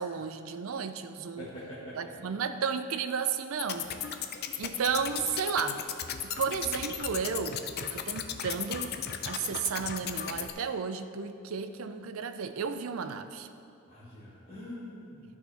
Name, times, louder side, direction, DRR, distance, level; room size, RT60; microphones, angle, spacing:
voice 1, 0.0-1.5 1.9-3.9 4.6-5.8 6.4-8.9 9.3-13.5, right 6 dB, 80° right, 10 dB, 0.5 m, -33 dB
voice 2, 1.4-2.1 13.9-15.2, equal, 30° left, -11 dB, 1.8 m, -44 dB
sound 1, 3.6-10.5, left 8 dB, 50° left, 0.5 m, -36 dB
13.0 x 6.2 x 3.4 m, 2.7 s
head